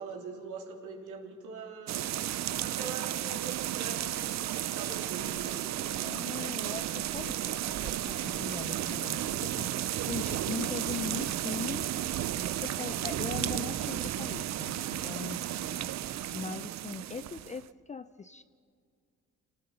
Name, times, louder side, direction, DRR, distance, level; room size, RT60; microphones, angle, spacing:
voice 1, 0.0-2.0 2.6-5.6 15.6-15.8, right 5 dB, 80° right, 1 dB, 3.3 m, -43 dB
sound 1, 1.9-17.6, right 12 dB, 65° right, 0.7 m, -33 dB
voice 2, 6.0-9.7 10.1-11.9 12.6-15.6 16.3-18.4, left 5 dB, 25° left, 12 dB, 0.5 m, -40 dB
27.0 x 18.5 x 5.7 m, 2.3 s
cardioid pair, 90°, 30 cm